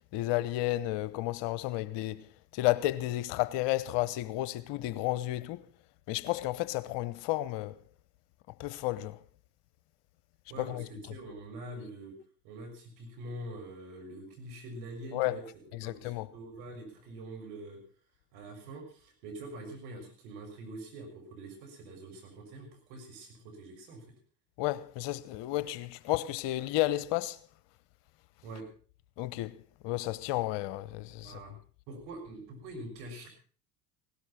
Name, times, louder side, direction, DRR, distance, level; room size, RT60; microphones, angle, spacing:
voice 1, 0.1-2.3 2.5-5.7 6.1-7.8 8.6-9.2 10.6-10.8 15.1-15.4 15.7-16.3 24.6-27.4 29.2-29.6 29.8-31.4, left 16 dB, 60° left, 1.1 m, -32 dB
voice 2, 10.5-12.1 12.4-15.4 15.8-17.8 18.3-24.1 28.4-28.7 31.2-31.5 31.9-33.3, right 1 dB, 75° right, 6.6 m, -45 dB
17.5 x 12.0 x 5.8 m
hypercardioid pair, 70°, 47 cm